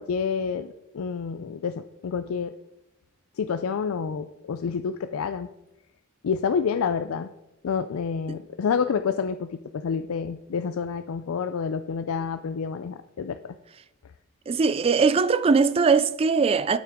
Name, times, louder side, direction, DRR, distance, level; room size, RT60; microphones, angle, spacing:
voice 1, 0.0-2.5 3.4-5.5 6.2-7.3 7.6-13.4, left 6 dB, 75° left, 0.4 m, -28 dB
voice 2, 14.5-16.8, right 5 dB, 25° right, 0.3 m, -21 dB
8.6 x 8.0 x 3.6 m
head